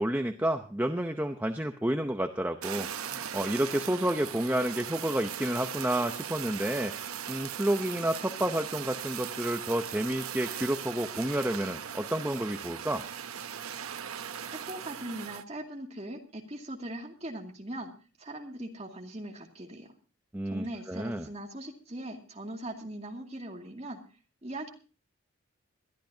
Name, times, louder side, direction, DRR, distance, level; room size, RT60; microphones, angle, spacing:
voice 1, 0.0-13.0 20.3-21.3, right 1 dB, 10° right, 6 dB, 0.7 m, -30 dB
Fire, 2.6-15.4, right 9 dB, 90° right, 0.8 m, -39 dB
voice 2, 14.5-17.9 18.2-19.9 20.5-24.0 24.4-24.7, right 1 dB, 30° right, 2 dB, 2.3 m, -40 dB
22.5 x 12.5 x 2.7 m, 0.36 s
head